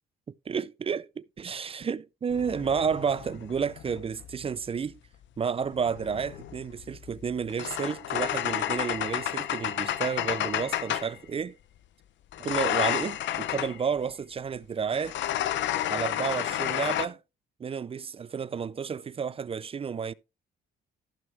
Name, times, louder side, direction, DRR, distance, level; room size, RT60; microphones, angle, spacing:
voice 1, 0.5-4.9 5.4-11.6 12.4-15.2 15.9-17.2 17.6-20.1, right 6 dB, 30° right, 0.4 m, -31 dB
sound 1, 2.3-4.4 5.6-11.2 12.3-13.8 14.9-17.1, left 12 dB, 70° left, 0.7 m, -31 dB
14.5 x 6.0 x 3.4 m
cardioid pair, 85°, 20 cm